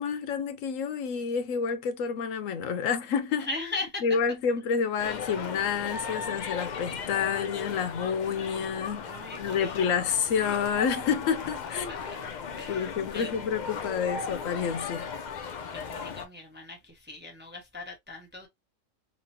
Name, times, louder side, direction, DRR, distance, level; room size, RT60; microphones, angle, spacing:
voice 1, 0.0-3.5 4.0-9.1 9.4-11.9 12.7-15.1, left 6 dB, 85° left, 1.0 m, -29 dB
voice 2, 3.4-4.0 9.0-9.9 11.7-12.0 12.6-13.3 15.7-18.5, left 3 dB, 10° right, 0.5 m, -39 dB
sound 1, 5.0-16.3, left 6 dB, 60° left, 0.5 m, -37 dB
3.1 x 2.8 x 2.7 m
omnidirectional pair, 1.3 m